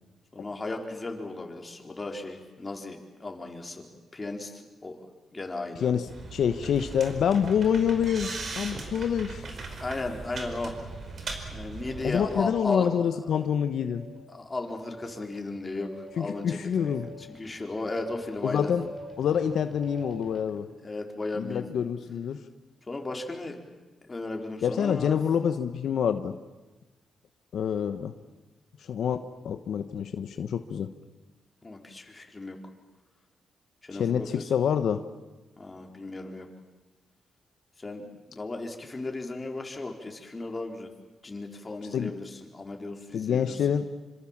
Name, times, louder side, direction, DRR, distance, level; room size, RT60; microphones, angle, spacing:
voice 1, 0.3-5.1 5.3-5.9 9.7-10.7 11.5-12.9 14.3-16.9 17.3-18.7 20.8-21.6 22.9-23.6 24.1-25.2 31.6-32.6 33.8-34.4 35.6-36.5 37.8-40.9 41.2-43.6, left 2 dB, 25° left, 3 dB, 4.2 m, -35 dB
voice 2, 5.8-9.4 12.0-14.1 16.2-17.1 18.4-18.9 19.2-20.7 21.4-22.4 24.6-26.4 27.5-28.1 28.8-30.9 33.9-35.0 41.9-42.1 43.1-43.8, left 8 dB, 75° left, 8 dB, 1.1 m, -27 dB
sound 1, 6.1-12.4, right 3 dB, 55° right, 5.2 m, -39 dB
sound 2, 8.9-9.2 9.9-10.2 10.8-11.2 11.8-12.3 12.8-13.2 13.8-20.4, equal, ahead, 5.2 m, -47 dB
27.0 x 25.5 x 7.4 m, 1.2 s
cardioid pair, 95°, 0 cm